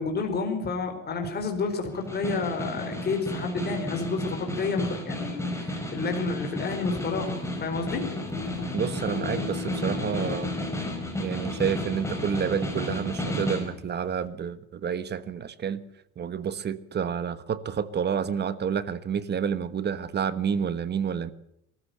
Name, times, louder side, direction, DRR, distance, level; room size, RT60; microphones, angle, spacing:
voice 1, 0.0-8.0, left 4 dB, 30° left, 4.6 m, -30 dB
Snare drum, 1.9-13.7, left 1 dB, 10° left, 5.4 m, -32 dB
Guitar, 7.7-14.3, left 7 dB, 55° left, 2.9 m, -40 dB
voice 2, 8.7-10.6 11.2-15.8 16.2-21.3, right 7 dB, 30° right, 1.3 m, -29 dB
22.5 x 14.5 x 8.2 m
cardioid pair, 130°, 33 cm